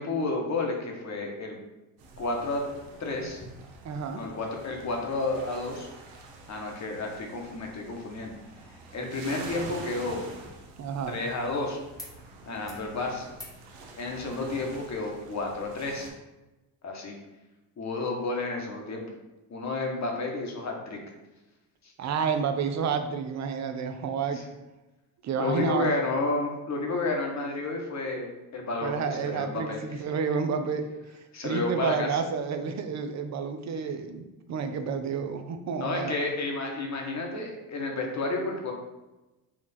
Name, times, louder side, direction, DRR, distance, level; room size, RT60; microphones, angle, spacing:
voice 1, 0.0-1.6 2.2-2.6 3.0-3.5 4.1-5.9 6.5-8.3 8.9-10.2 11.1-11.8 12.5-13.3 14.0-16.1 16.8-17.2 17.8-19.0 19.5-21.0 21.8-21.9 24.3-24.4 25.4-30.1 31.3-32.2 35.8-38.7, left 2 dB, 35° left, 1 dB, 1.1 m, -31 dB
sound 1, 2.0-16.1, right 3 dB, 75° right, 0.9 m, -46 dB
voice 2, 3.8-4.2 10.8-11.2 22.0-24.4 25.2-25.9 28.8-30.9 31.4-36.1, right 6 dB, 40° right, 8 dB, 0.5 m, -30 dB
sound 2, 12.0-12.2 12.5-12.9 13.3-13.6 15.0-15.1, left 1 dB, 10° left, 0.9 m, -49 dB
4.4 x 2.4 x 4.1 m, 1.0 s
supercardioid pair, 75°, 46 cm